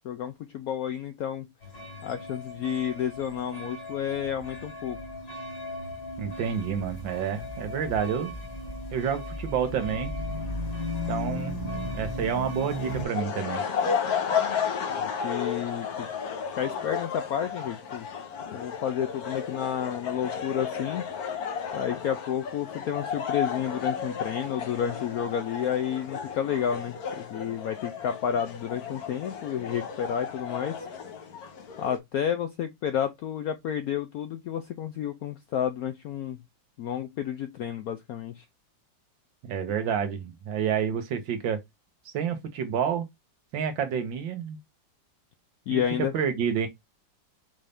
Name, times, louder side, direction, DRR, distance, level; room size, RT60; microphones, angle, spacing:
voice 1, 0.0-1.5 2.0-5.0 15.0-16.1 16.6-18.1 18.5-21.1 21.7-30.9 31.8-36.4 36.8-38.4 45.7-46.1, left 9 dB, 75° left, 0.8 m, -31 dB
sound 1, 1.6-13.0, left 1 dB, 35° left, 1.6 m, -36 dB
voice 2, 6.2-8.3 8.9-10.1 11.1-11.6 11.9-13.6 39.4-41.6 42.1-43.1 43.5-44.6 45.7-45.8 46.1-46.7, right 7 dB, 80° right, 1.7 m, -29 dB
sound 2, 12.6-32.0, left 7 dB, 55° left, 1.3 m, -33 dB
5.5 x 2.6 x 3.4 m
omnidirectional pair, 2.0 m